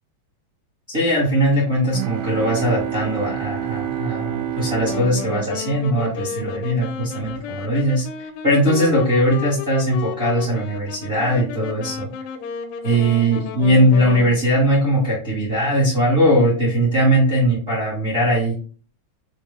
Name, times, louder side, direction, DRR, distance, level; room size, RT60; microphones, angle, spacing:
voice 1, 0.9-12.1 12.8-18.5, equal, 65° right, -6 dB, 0.5 m, -20 dB
sound 1, 1.9-6.6, right 11 dB, 85° right, 2.2 m, -29 dB
Wind instrument woodwind instrument, 4.8-14.4, left 6 dB, 80° left, 2.2 m, -33 dB
6.3 x 2.1 x 3.3 m, 0.39 s
omnidirectional pair, 3.9 m